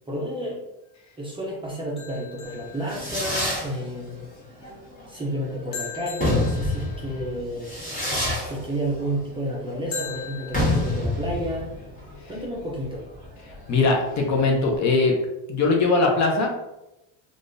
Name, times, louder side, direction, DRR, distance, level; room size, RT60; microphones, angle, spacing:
voice 1, 0.1-0.6 1.2-4.2 5.1-7.8 8.4-11.7 12.3-13.0, right 1 dB, 10° right, -5 dB, 0.5 m, -31 dB
sound 1, 2.0-3.5 5.7-7.3 9.9-11.0, left 6 dB, 75° left, 1.1 m, -39 dB
Fireworks, 2.5-14.7, left 1 dB, 20° left, 1.4 m, -29 dB
voice 2, 13.7-15.2 15.5-16.7, left 3 dB, 40° left, 0 dB, 0.6 m, -21 dB
3.5 x 2.4 x 2.5 m, 0.93 s
cardioid pair, 140°, 43 cm